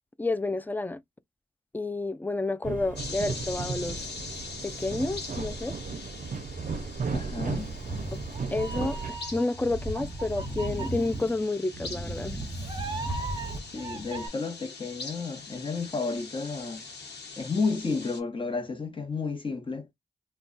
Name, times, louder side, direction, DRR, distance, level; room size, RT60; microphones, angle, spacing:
voice 1, 0.2-1.0 1.7-4.1 4.6-5.8 8.1-12.4, left 2 dB, 10° left, 0.3 m, -30 dB
sound 1, 2.6-9.1, right 5 dB, 50° right, 0.5 m, -35 dB
sound 2, 3.0-18.2, left 4 dB, 85° left, 1.0 m, -43 dB
voice 2, 7.1-7.7 13.7-16.8 17.4-19.9, left 4 dB, 30° left, 1.0 m, -32 dB
Meow, 7.6-14.3, right 2 dB, 25° right, 0.9 m, -36 dB
2.3 x 2.2 x 3.7 m
cardioid pair, 75°, 17 cm